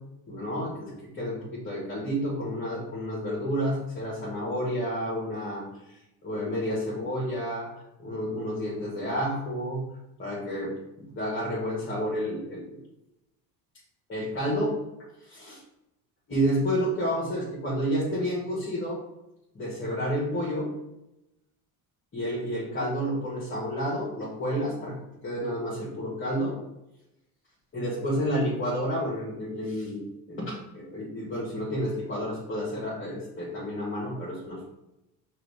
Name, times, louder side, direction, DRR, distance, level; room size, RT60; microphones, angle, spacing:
voice 1, 0.3-5.6 6.2-7.7 8.0-9.8 10.2-12.8 14.1-14.8 15.4-15.5 16.3-19.0 19.5-20.7 22.1-25.0 25.2-26.6 27.7-30.0 30.3-34.7, equal, 30° left, -6 dB, 1.6 m, -30 dB
5.7 x 2.7 x 3.4 m, 0.89 s
cardioid pair, 105°, 39 cm